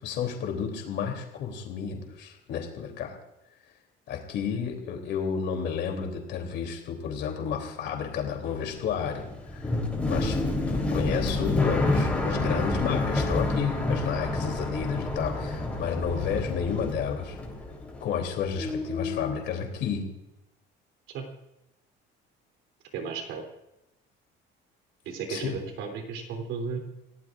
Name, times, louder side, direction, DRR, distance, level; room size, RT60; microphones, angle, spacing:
voice 1, 0.0-3.1 4.1-9.8 10.1-10.4 10.7-17.4 18.0-20.0 25.3-25.6, left 7 dB, 65° left, 3 dB, 3.1 m, -31 dB
sound 1, 8.4-18.3 18.6-19.4, left 2 dB, 5° left, 3.6 m, -29 dB
voice 2, 22.9-23.4 25.0-26.8, right 5 dB, 75° right, 3 dB, 3.4 m, -34 dB
28.5 x 17.5 x 2.5 m, 0.90 s
cardioid pair, 155°, 20 cm